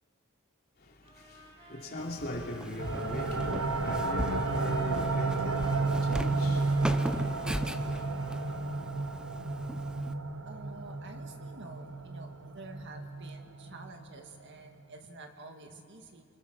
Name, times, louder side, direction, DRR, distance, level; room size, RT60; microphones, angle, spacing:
voice 1, 0.8-7.8, left 1 dB, 50° left, 3.3 m, -40 dB
sound 1, 1.0-8.8, equal, 30° right, 7.2 m, -54 dB
Walk footsteps, 2.0-10.1, equal, 5° right, 0.7 m, -39 dB
sound 2, 2.8-14.2, right 3 dB, 85° right, 0.9 m, -32 dB
voice 2, 10.5-16.2, right 2 dB, 60° right, 1.9 m, -49 dB
27.0 x 25.5 x 6.2 m
head